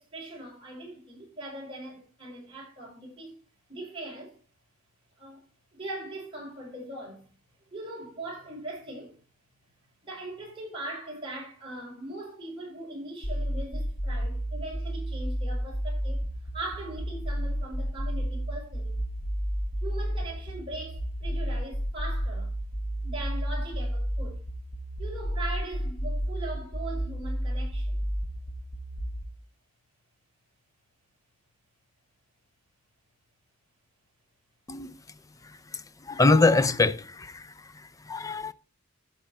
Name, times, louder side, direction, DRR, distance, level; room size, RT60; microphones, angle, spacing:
voice 1, 0.0-3.3 3.7-4.4 5.2-5.4 5.7-7.3 7.7-9.1 10.0-16.3 16.5-19.1 19.8-22.5 23.0-24.4 25.0-28.1, right 1 dB, 25° right, 5.5 m, -40 dB
sound 1, 13.2-29.2, equal, 45° left, 1.8 m, -31 dB
voice 2, 36.1-37.5 38.1-38.5, left 3 dB, 15° left, 0.5 m, -23 dB
12.0 x 7.3 x 4.3 m
head